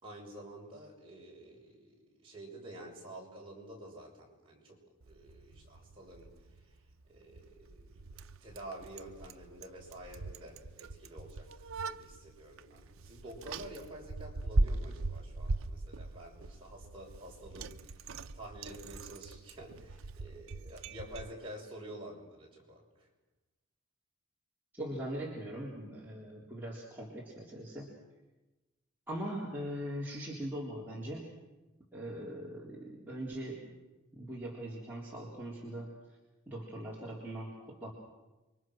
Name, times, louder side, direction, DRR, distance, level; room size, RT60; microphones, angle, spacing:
voice 1, 0.0-1.9 2.2-6.3 7.1-18.0 18.3-23.1, right 1 dB, 25° right, -3 dB, 6.4 m, -49 dB
Bicycle, 5.0-21.3, right 2 dB, 75° right, 0.7 m, -39 dB
voice 2, 24.7-27.9 29.1-31.3 31.9-33.7 34.1-36.2 36.5-37.9, right 1 dB, 10° right, -6 dB, 3.8 m, -41 dB
28.5 x 24.0 x 6.3 m, 1.1 s
head